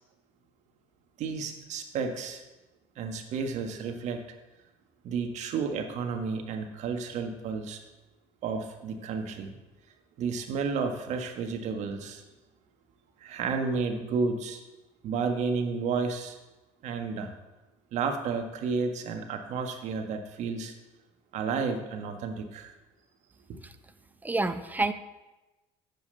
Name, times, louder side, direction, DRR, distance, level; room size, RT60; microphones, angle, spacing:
voice 1, 1.2-2.4 3.0-4.2 5.0-7.8 8.4-9.5 10.2-12.2 13.2-14.6 15.0-16.4 16.8-17.3 17.9-20.7 21.3-22.7, right 5 dB, 60° right, 5 dB, 1.6 m, -31 dB
voice 2, 24.2-24.9, right 2 dB, 15° right, 11 dB, 0.8 m, -28 dB
7.3 x 7.0 x 7.9 m, 1.1 s
supercardioid pair, 90°, 13 cm